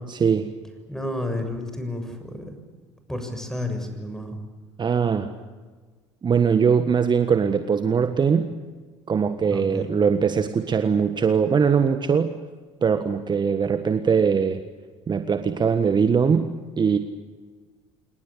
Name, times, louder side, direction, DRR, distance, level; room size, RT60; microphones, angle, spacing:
voice 1, 0.1-0.5 4.8-5.3 6.2-8.5 9.1-12.3 12.8-14.6 15.1-16.5 16.8-17.0, right 6 dB, 30° right, 9 dB, 1.5 m, -21 dB
voice 2, 0.9-2.5 3.1-4.4 9.5-9.9, left 1 dB, 5° left, 6 dB, 6.9 m, -31 dB
28.5 x 19.0 x 8.5 m, 1.4 s
hypercardioid pair, 65°, 15 cm